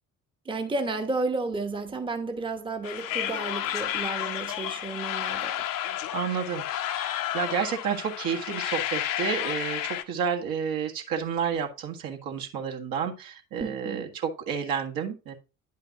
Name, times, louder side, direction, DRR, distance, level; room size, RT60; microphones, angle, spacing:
voice 1, 0.4-5.7 13.6-14.1, right 3 dB, 10° right, 1.1 m, -32 dB
sound 1, 2.8-10.0, left 12 dB, 50° left, 0.9 m, -31 dB
voice 2, 6.1-15.3, right 7 dB, 55° right, 1.7 m, -30 dB
10.0 x 5.6 x 2.9 m
figure-of-eight pair, 55°, 42 cm